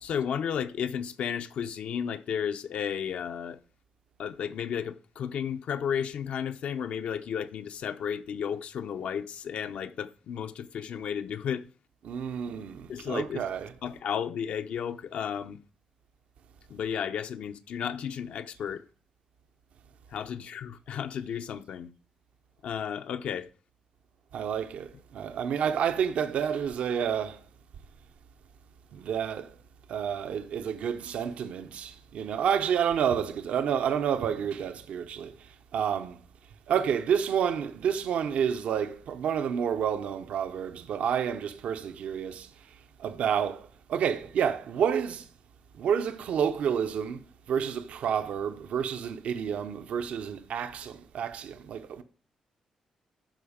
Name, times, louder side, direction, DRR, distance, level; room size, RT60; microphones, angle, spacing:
voice 1, 0.0-3.6 4.2-11.7 12.9-13.4 13.8-15.6 16.7-18.8 20.1-21.9 22.6-23.5, left 8 dB, 75° left, 0.6 m, -33 dB
voice 2, 12.0-13.7 24.3-27.4 28.9-29.5 29.9-35.3 35.7-36.2 36.7-42.5 43.0-45.2 45.8-52.0, right 8 dB, 80° right, 0.6 m, -29 dB
12.0 x 4.7 x 5.0 m
cardioid pair, 115°, 2 cm